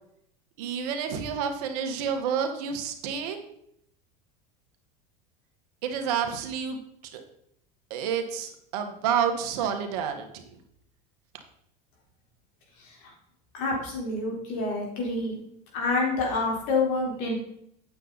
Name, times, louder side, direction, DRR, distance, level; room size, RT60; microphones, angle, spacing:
voice 1, 0.6-3.4 5.8-7.2 7.9-10.3, right 7 dB, 70° right, 5 dB, 1.6 m, -29 dB
voice 2, 13.5-15.4 15.7-17.3, left 3 dB, 65° left, -1 dB, 3.9 m, -27 dB
8.9 x 7.3 x 4.0 m, 0.72 s
supercardioid pair, 110°, 21 cm